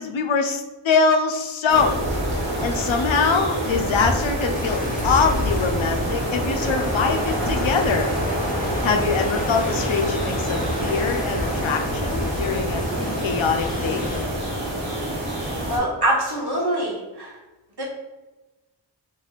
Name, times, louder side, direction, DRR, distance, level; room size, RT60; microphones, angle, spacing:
voice 1, 0.0-2.0 2.6-8.1 8.8-14.1, left 5 dB, 80° left, 4 dB, 0.6 m, -23 dB
sound 1, 1.7-15.8, right 1 dB, 85° right, 1.2 m, -26 dB
sound 2, 4.5-14.2, left 2 dB, 20° left, 0.4 m, -32 dB
voice 2, 15.7-17.4 17.8-17.9, right 1 dB, 55° right, -4 dB, 1.2 m, -24 dB
3.0 x 2.6 x 4.0 m, 1.1 s
wide cardioid pair, 45°, 46 cm